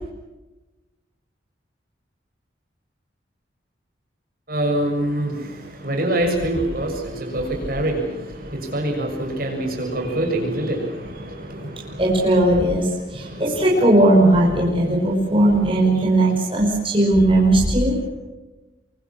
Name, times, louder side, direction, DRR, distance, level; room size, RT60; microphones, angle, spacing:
voice 1, 4.5-5.6 5.8-12.0 13.2-13.4, right 1 dB, 50° right, 2 dB, 6.9 m, -25 dB
voice 2, 12.0-17.9, right 1 dB, 25° right, -4 dB, 5.9 m, -17 dB
28.0 x 24.0 x 7.4 m, 1.1 s
head